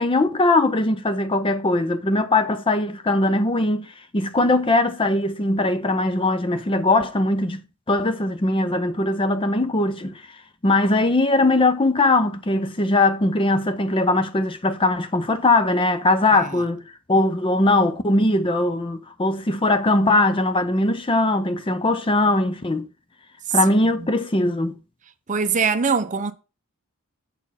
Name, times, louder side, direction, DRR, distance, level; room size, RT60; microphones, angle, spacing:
voice 1, 0.0-3.9 4.1-10.2 10.6-16.8 17.1-22.9 23.5-24.8, left 2 dB, 25° left, 0.6 m, -20 dB
voice 2, 16.3-16.6 23.5-23.6 24.0-24.1 25.3-26.3, right 5 dB, 35° right, 0.6 m, -23 dB
7.3 x 4.3 x 5.6 m
head